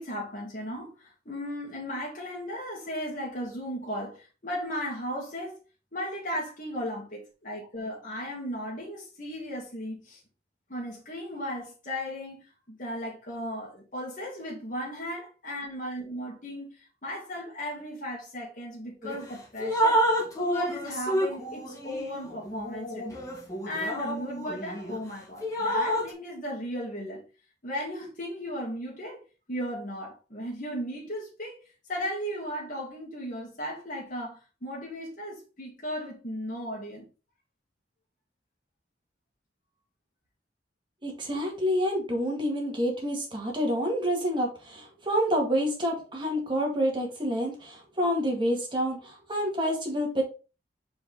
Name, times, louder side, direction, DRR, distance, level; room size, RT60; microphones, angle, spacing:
voice 1, 0.0-5.6 5.9-10.2 10.7-20.1 20.4-23.3 23.6-27.3 27.6-29.2 29.5-37.1, equal, 50° left, 2.3 m, -36 dB
Drip, 19.0-19.2 19.6-25.0 25.4-26.1, equal, 20° left, 1.7 m, -29 dB
voice 2, 41.0-50.2, equal, 30° right, 2.0 m, -28 dB
4.9 x 4.7 x 4.0 m
head